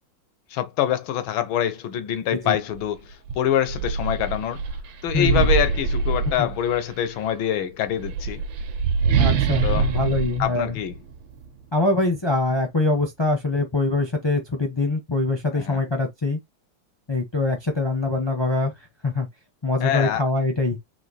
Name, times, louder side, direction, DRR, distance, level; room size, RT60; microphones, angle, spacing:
voice 1, 0.5-4.6 5.0-8.4 9.6-9.9 10.4-10.9 15.5-15.8 19.8-20.2, left 10 dB, 90° left, 1.5 m, -25 dB
sound 1, 2.7-2.9 3.3-6.9 7.8-11.5, right 5 dB, 80° right, 1.5 m, -24 dB
voice 2, 5.1-5.5 6.4-6.5 9.2-10.8 11.7-16.4 17.1-18.7 19.0-19.3 19.6-20.8, left 2 dB, 35° left, 0.4 m, -23 dB
4.3 x 2.6 x 4.0 m
omnidirectional pair, 2.1 m